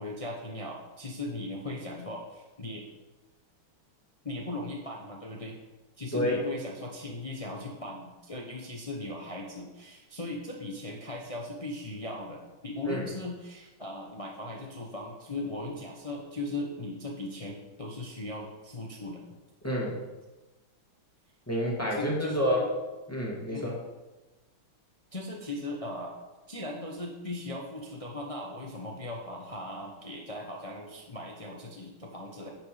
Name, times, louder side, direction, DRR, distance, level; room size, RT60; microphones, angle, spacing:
voice 1, 0.0-2.9 4.2-5.6 6.0-19.4 21.9-22.7 23.5-23.8 25.1-26.1 26.5-32.5, left 1 dB, 35° left, 0 dB, 0.5 m, -38 dB
voice 2, 19.6-20.0 21.5-22.6 23.1-23.7, equal, 5° left, -4 dB, 2.0 m, -29 dB
10.5 x 6.0 x 5.0 m, 1.1 s
omnidirectional pair, 2.3 m